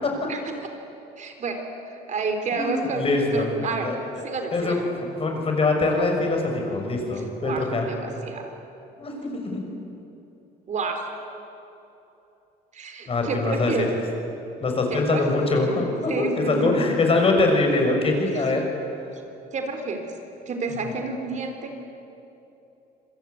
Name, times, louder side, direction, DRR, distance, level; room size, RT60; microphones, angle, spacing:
voice 1, 1.2-3.0 3.3-3.9 4.2-4.8 7.1-8.5 10.7-11.1 12.7-14.0 14.9-15.3 16.1-16.8 19.5-20.1 20.5-21.8, right 4 dB, 45° right, 5 dB, 3.7 m, -30 dB
voice 2, 2.6-3.5 3.8-4.0 4.5-7.9 9.0-9.6 13.1-13.9 14.6-18.7 20.8-20.9, left 2 dB, 35° left, 2 dB, 6.5 m, -23 dB
27.0 x 21.5 x 9.5 m, 2.9 s
cardioid pair, 110°, 17 cm